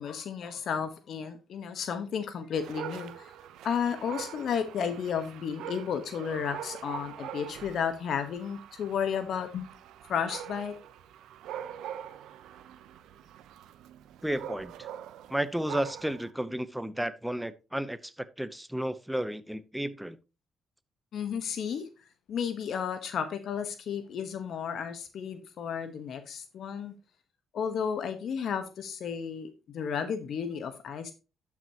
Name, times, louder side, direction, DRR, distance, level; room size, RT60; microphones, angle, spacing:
voice 1, 0.0-3.3 3.6-9.7 10.1-10.7 21.1-21.8 22.3-26.9 27.5-31.1, left 7 dB, 65° left, 1.2 m, -33 dB
Dog, 2.6-16.3, right 10 dB, 85° right, 0.7 m, -44 dB
voice 2, 14.2-14.9 15.3-20.2, right 1 dB, 5° right, 0.8 m, -33 dB
12.0 x 6.0 x 2.9 m
cardioid pair, 90°, 0 cm